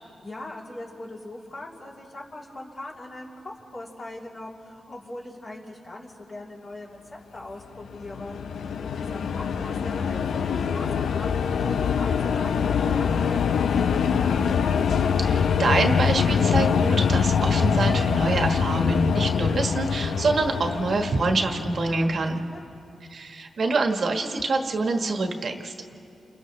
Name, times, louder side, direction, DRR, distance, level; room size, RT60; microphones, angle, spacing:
voice 1, 0.2-14.4 22.5-22.8, left 1 dB, 35° left, -3 dB, 3.1 m, -40 dB
sound 1, 7.8-22.3, left 6 dB, 90° left, 0.6 m, -24 dB
voice 2, 15.2-22.4 23.1-26.0, right 3 dB, 55° right, 4 dB, 1.3 m, -26 dB
29.5 x 28.0 x 3.2 m, 2.6 s
wide cardioid pair, 145°, 0 cm